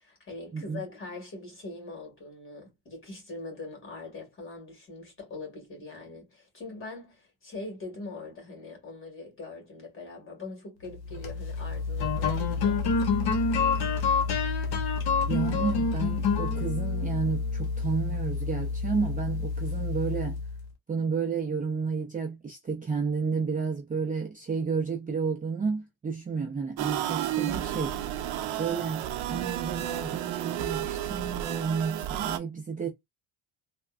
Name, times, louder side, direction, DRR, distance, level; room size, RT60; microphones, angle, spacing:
voice 1, 0.0-13.8, left 3 dB, 30° left, 1.8 m, -42 dB
sound 1, 11.0-20.6, left 4 dB, 55° left, 0.9 m, -28 dB
voice 2, 15.3-20.4 20.9-27.9 28.6-32.9, right 5 dB, 20° right, 0.5 m, -31 dB
sound 2, 26.8-32.4, right 12 dB, 85° right, 0.7 m, -32 dB
3.4 x 2.1 x 2.4 m
cardioid pair, 150°, 45 cm